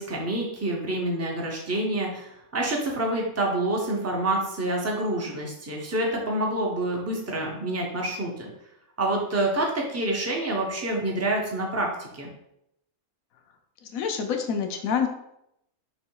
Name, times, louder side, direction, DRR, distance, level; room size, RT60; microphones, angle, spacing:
voice 1, 0.0-8.5 9.0-12.3, right 1 dB, 20° right, -1 dB, 0.5 m, -27 dB
voice 2, 13.9-15.1, left 7 dB, 75° left, 5 dB, 1.0 m, -26 dB
3.2 x 3.0 x 4.6 m, 0.79 s
omnidirectional pair, 1.5 m